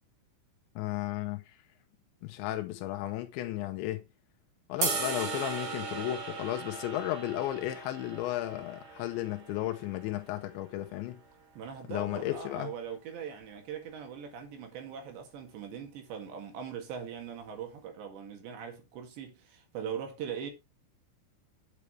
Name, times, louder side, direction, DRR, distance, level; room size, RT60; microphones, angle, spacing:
voice 1, 0.8-1.5 2.2-4.0 4.7-11.2 11.9-12.7, left 14 dB, 85° left, 2.7 m, -34 dB
sound 1, 4.8-11.0, right 5 dB, 45° right, 3.8 m, -38 dB
voice 2, 11.6-20.5, right 7 dB, 65° right, 4.0 m, -41 dB
9.3 x 8.5 x 3.3 m
omnidirectional pair, 5.9 m